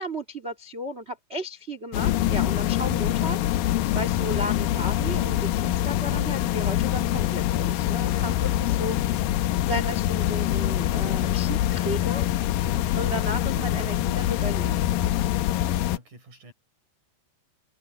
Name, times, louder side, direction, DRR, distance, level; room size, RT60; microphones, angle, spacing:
voice 1, 0.0-9.2 9.7-12.3 12.9-14.8, equal, 30° right, 1.3 m, -34 dB
sound 1, 1.9-16.0, left 13 dB, 85° left, 2.1 m, -25 dB
voice 2, 15.6-16.5, equal, 45° right, 8.6 m, -45 dB
omnidirectional pair, 5.1 m